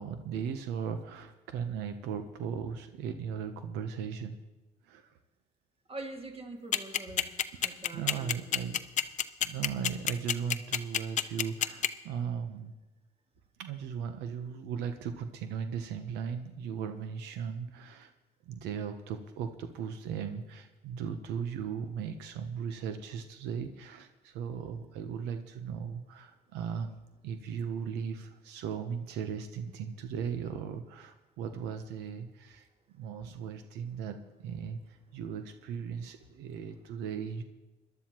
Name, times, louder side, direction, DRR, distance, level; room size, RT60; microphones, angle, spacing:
voice 1, 0.0-4.4 4.8-5.1 7.6-8.8 9.4-12.7 13.6-18.1 18.5-26.9 27.2-32.7 32.9-37.4, right 7 dB, 90° right, 8 dB, 0.8 m, -37 dB
voice 2, 5.9-7.3 7.6-8.4, right 2 dB, 35° right, 3 dB, 2.1 m, -43 dB
sound 1, 6.7-11.9, left 10 dB, 45° left, 0.7 m, -27 dB
21.0 x 12.0 x 3.0 m, 1.1 s
cardioid pair, 110°, 17 cm